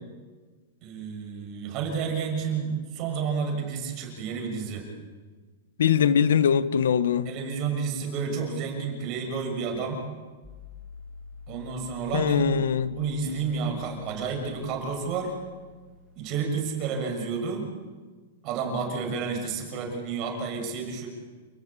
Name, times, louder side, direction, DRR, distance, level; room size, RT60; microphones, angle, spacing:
voice 1, 0.8-4.9 7.2-10.0 11.5-12.5 12.8-15.4 16.2-17.7 18.4-21.1, right 5 dB, 30° right, 3 dB, 6.3 m, -30 dB
voice 2, 5.8-7.3 12.1-12.9, left 8 dB, 85° left, 14 dB, 1.2 m, -22 dB
sound 1, 10.4-16.5, left 5 dB, 5° right, 2.6 m, -47 dB
29.5 x 18.5 x 8.5 m, 1.4 s
supercardioid pair, 170°, 0 cm